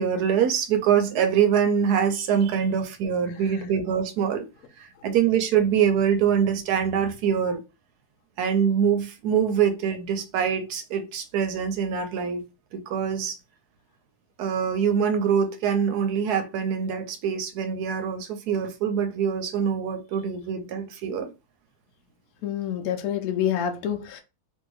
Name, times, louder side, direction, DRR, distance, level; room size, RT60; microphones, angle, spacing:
voice 1, 0.0-4.4 4.8-7.6 8.4-12.4 12.7-13.4 14.4-21.3, right 7 dB, 80° right, 1.1 m, -24 dB
voice 2, 3.3-3.6 22.4-24.2, left 9 dB, 70° left, 1.0 m, -28 dB
2.8 x 2.6 x 3.1 m
omnidirectional pair, 1.7 m